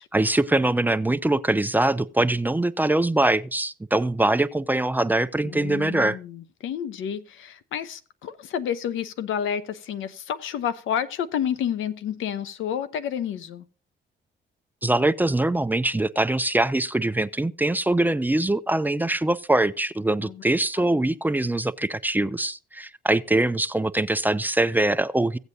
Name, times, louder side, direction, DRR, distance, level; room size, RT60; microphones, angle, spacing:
voice 1, 0.0-6.2 14.8-25.4, right 2 dB, 10° right, 0.4 m, -23 dB
voice 2, 5.4-13.6 20.2-20.4 20.8-20.9, left 9 dB, 80° left, 0.9 m, -30 dB
16.0 x 8.0 x 2.7 m
cardioid pair, 90°, 20 cm